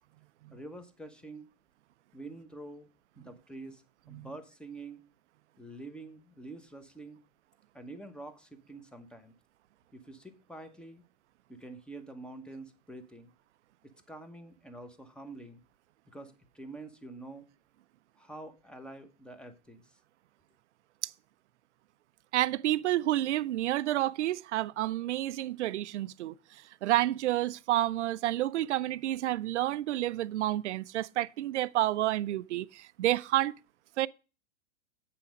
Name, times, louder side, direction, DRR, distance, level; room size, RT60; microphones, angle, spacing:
voice 1, 0.5-1.5 2.1-2.9 3.2-5.0 5.6-7.2 7.7-9.3 9.9-11.0 11.5-13.3 13.8-15.6 16.1-17.4 18.2-20.0, right 2 dB, 5° left, 1.0 m, -47 dB
voice 2, 22.3-33.5 34.0-34.1, right 14 dB, 70° right, 0.5 m, -30 dB
8.4 x 5.8 x 5.1 m
hypercardioid pair, 115°, 36 cm